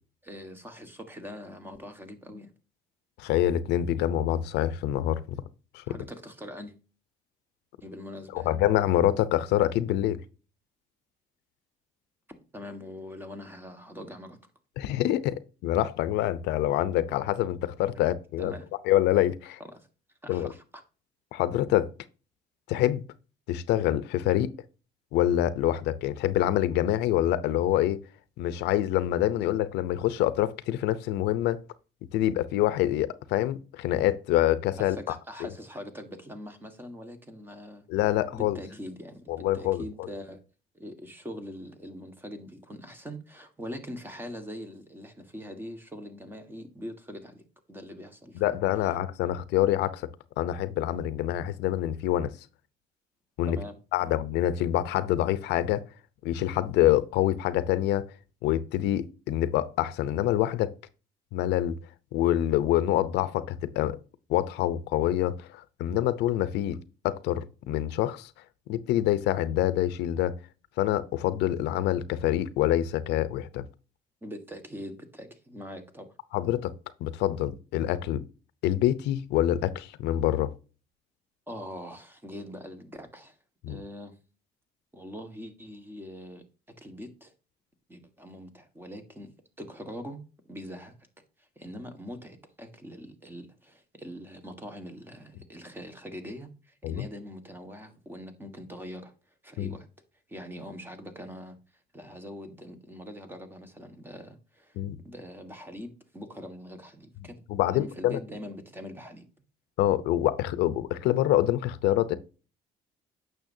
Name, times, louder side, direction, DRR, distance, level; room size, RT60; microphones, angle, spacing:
voice 1, 0.2-2.5 5.9-6.7 7.8-8.7 12.5-14.4 18.1-18.6 19.7-19.9 20.2-20.8 34.8-37.8 38.3-40.4 40.7-47.4 47.7-48.4 49.3-49.4 53.5-54.2 74.2-76.1 81.5-83.4 83.7-84.1 84.9-86.4 86.8-87.3 87.9-89.3 89.6-91.0 91.4-99.1 99.4-99.9 100.3-101.6 101.9-109.3, equal, 10° right, 1.6 m, -43 dB
voice 2, 3.2-5.4 5.7-6.0 8.3-10.2 14.8-18.5 18.8-19.6 20.3-20.5 21.3-21.9 22.7-23.0 23.5-24.5 25.1-28.0 28.4-31.6 32.1-35.0 37.9-38.6 39.3-40.1 48.3-50.1 50.4-52.3 53.4-53.6 53.9-55.9 56.2-58.1 58.4-60.7 61.3-61.7 62.1-64.0 64.3-66.8 67.0-68.3 68.7-70.4 70.8-73.6 76.3-76.7 77.0-78.2 78.6-80.5 83.6-83.8 96.8-97.0 99.6-99.7 104.8-105.0 107.5-108.2 109.8-112.2, left 13 dB, 85° left, 0.7 m, -26 dB
9.1 x 6.4 x 2.7 m
cardioid pair, 110°, 17 cm